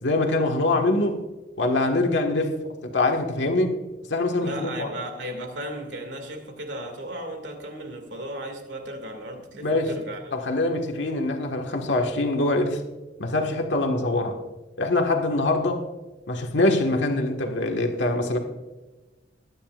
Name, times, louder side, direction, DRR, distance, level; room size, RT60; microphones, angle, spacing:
voice 1, 0.0-1.2 1.6-2.5 2.8-3.7 4.1-4.9 9.6-9.9 10.3-12.8 13.2-14.4 14.8-15.8 16.3-18.4, left 2 dB, 85° left, 1.6 m, -24 dB
voice 2, 4.4-10.4, right 1 dB, 75° right, 2.2 m, -35 dB
21.5 x 9.9 x 2.5 m
head